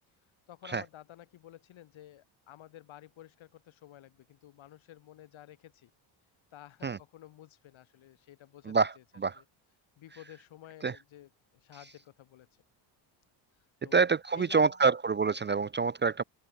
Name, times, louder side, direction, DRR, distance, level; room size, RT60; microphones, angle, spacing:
voice 1, 0.5-5.9 6.5-9.0 9.3-9.4 10.0-12.5 13.8-14.0 14.3-15.0, left 13 dB, 65° left, 5.8 m, -52 dB
voice 2, 8.7-9.4 10.8-10.9 13.9-16.2, right 5 dB, 20° right, 0.5 m, -27 dB
open air
cardioid pair, 90°, 50 cm